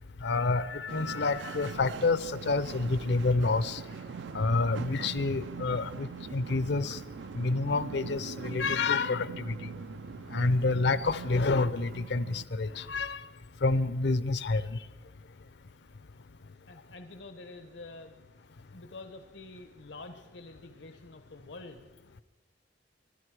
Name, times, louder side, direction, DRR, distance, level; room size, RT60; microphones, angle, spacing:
voice 1, 0.2-3.8 4.3-7.0 7.3-9.7 10.3-13.2 13.6-14.8, left 3 dB, 65° left, 16 dB, 0.6 m, -28 dB
sound 1, 0.9-12.4, right 6 dB, 70° right, 0.4 m, -42 dB
voice 2, 16.2-18.2 18.6-21.9, left 2 dB, 85° left, 8 dB, 1.0 m, -48 dB
23.5 x 11.5 x 4.8 m, 1.2 s
head